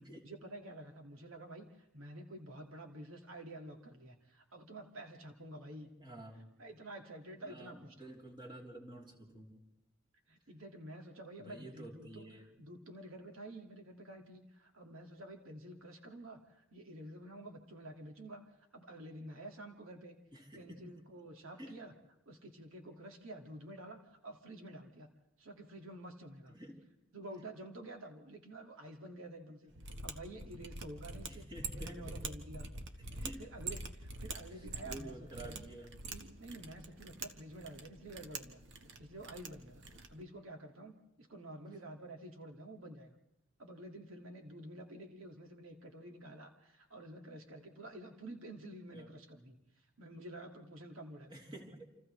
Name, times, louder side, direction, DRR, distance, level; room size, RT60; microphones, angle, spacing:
voice 1, 0.2-5.9 6.6-8.1 10.3-12.3 12.6-20.2 20.5-21.9 22.3-25.1 25.4-26.6 27.1-31.5 31.7-32.7 33.2-35.7 36.1-38.6 39.0-39.8 40.1-43.2 43.6-51.3, right 1 dB, 80° right, 3 dB, 2.2 m, -50 dB
voice 2, 6.0-6.6 7.4-9.7 11.4-12.5 20.3-21.0 21.6-21.8 26.5-26.9 31.3-32.2 33.1-33.5 34.5-35.9 48.9-49.2 51.3-51.8, right 1 dB, 25° right, -2 dB, 3.5 m, -50 dB
Mechanisms, 29.7-40.2, right 3 dB, 60° right, 1.4 m, -45 dB
29.0 x 27.5 x 3.3 m, 0.90 s
head